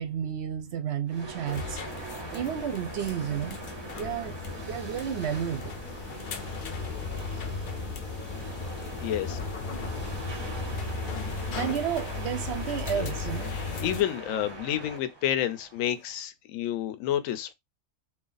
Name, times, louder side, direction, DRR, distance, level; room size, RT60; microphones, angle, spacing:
voice 1, 0.0-1.8 2.3-3.6 3.9-4.4 4.6-5.8 6.4-6.5 11.5-13.5, right 9 dB, 65° right, 0.7 m, -32 dB
sound 1, 1.1-16.2, right 3 dB, 30° right, 0.5 m, -42 dB
sound 2, 1.5-14.0, left 4 dB, 60° left, 0.5 m, -36 dB
voice 2, 9.0-9.4 12.9-13.1 13.5-17.5, left 11 dB, 80° left, 1.0 m, -30 dB
2.9 x 2.5 x 3.8 m
omnidirectional pair, 1.4 m